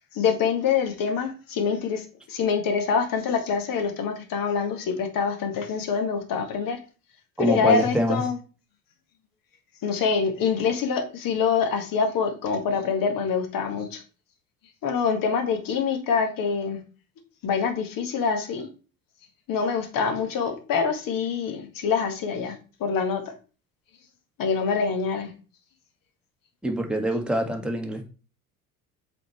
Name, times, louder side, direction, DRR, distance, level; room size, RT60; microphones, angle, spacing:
voice 1, 0.1-6.8 7.4-8.4 9.8-14.0 14.8-16.8 17.4-18.7 19.5-23.3 24.4-25.3, left 6 dB, 45° left, 1.8 m, -25 dB
voice 2, 7.4-8.2 26.6-28.0, right 1 dB, ahead, 1.6 m, -25 dB
7.8 x 4.4 x 3.2 m
hypercardioid pair, 65°, 45 cm